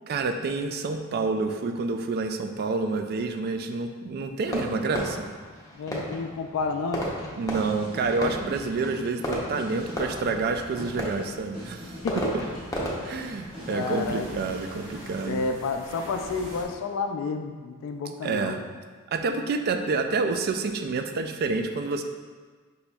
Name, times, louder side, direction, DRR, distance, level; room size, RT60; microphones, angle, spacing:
voice 1, 0.1-5.3 7.3-12.0 13.0-15.4 18.2-18.6 19.1-22.0, right 3 dB, 45° right, 6 dB, 0.3 m, -28 dB
Fireworks, 4.5-15.0, equal, 15° left, 0.6 m, -35 dB
voice 2, 5.8-7.1 12.0-12.3 13.2-13.4 13.6-14.3 15.3-18.6, left 4 dB, 65° left, 5 dB, 0.3 m, -30 dB
sound 1, 7.4-14.9, equal, 25° right, 1.1 m, -43 dB
sound 2, 9.7-16.6, right 1 dB, 60° right, 1.1 m, -46 dB
5.3 x 4.1 x 2.3 m, 1.5 s
head